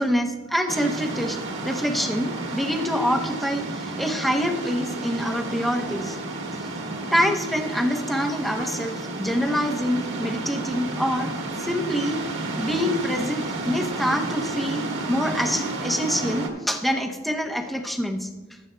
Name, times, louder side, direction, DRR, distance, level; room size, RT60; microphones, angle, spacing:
voice 1, 0.0-6.2 7.1-11.3 11.6-12.2 12.6-18.3, equal, ahead, 4 dB, 0.8 m, -26 dB
sound 1, 0.7-16.5, right 2 dB, 60° right, 1.6 m, -31 dB
15.0 x 11.5 x 2.2 m, 1.2 s
head